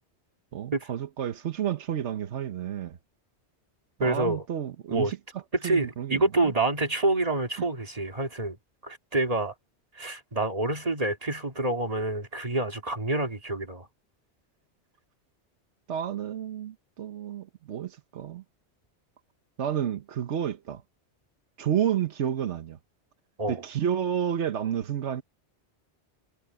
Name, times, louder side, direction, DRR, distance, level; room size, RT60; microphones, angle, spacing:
voice 1, 0.5-3.0 4.0-6.5 15.9-18.4 19.6-20.8 21.6-22.8 23.5-25.2, right 9 dB, 90° right, 1.2 m, -30 dB
voice 2, 4.0-4.4 4.9-5.1 5.6-8.6 8.8-9.5 9.9-13.9 23.4-23.6, right 2 dB, 35° right, 2.6 m, -27 dB
omnidirectional pair, 1.1 m